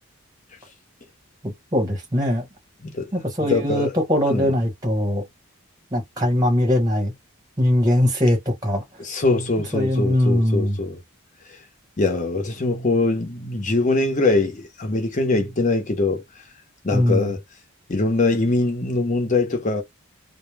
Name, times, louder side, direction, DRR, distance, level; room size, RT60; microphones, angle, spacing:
voice 1, 1.4-2.4 3.1-5.2 5.9-7.1 7.6-8.8 9.7-10.8 16.9-17.3, left 1 dB, 15° right, 0.9 m, -21 dB
voice 2, 3.5-3.9 4.3-4.5 9.0-11.0 11.5-11.6 12.0-16.2 16.8-17.4 17.9-19.8, left 2 dB, 35° left, 0.6 m, -22 dB
2.0 x 2.0 x 3.2 m
head